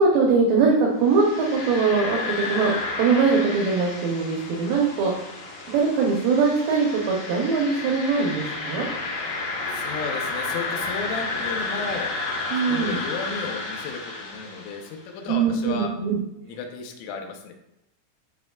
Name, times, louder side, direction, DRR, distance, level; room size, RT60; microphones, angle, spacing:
voice 1, 0.0-5.3 5.7-8.9 12.5-13.0 15.3-16.2, right 4 dB, 80° right, -2 dB, 2.1 m, -22 dB
sound 1, 1.0-15.0, left 3 dB, 60° left, 4.6 m, -31 dB
voice 2, 9.7-12.1 12.6-15.9 16.5-17.5, left 5 dB, 85° left, 4 dB, 3.4 m, -34 dB
12.5 x 4.6 x 2.4 m, 0.88 s
omnidirectional pair, 5.6 m